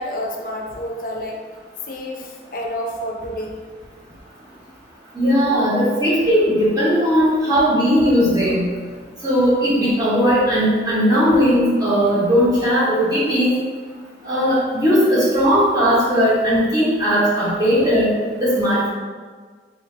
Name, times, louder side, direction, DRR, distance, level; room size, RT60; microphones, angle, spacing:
voice 1, 0.0-1.4 1.9-3.6, equal, 50° left, 0 dB, 0.5 m, -29 dB
voice 2, 5.1-8.7 9.2-13.5 14.2-18.1 18.4-18.9, equal, 20° right, -8 dB, 1.1 m, -17 dB
3.8 x 2.7 x 3.2 m, 1.5 s
head